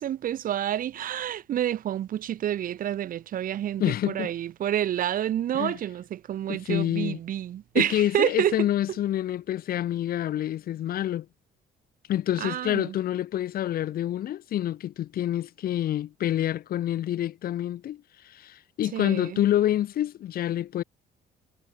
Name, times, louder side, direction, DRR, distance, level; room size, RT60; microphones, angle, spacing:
voice 1, 0.0-8.5 12.4-12.9 18.9-19.4, right 11 dB, 55° right, 1.3 m, -28 dB
voice 2, 3.8-4.3 5.5-5.8 6.5-7.2 7.7-11.3 12.1-20.8, left 12 dB, 60° left, 2.2 m, -27 dB
cardioid pair, 110°, 17 cm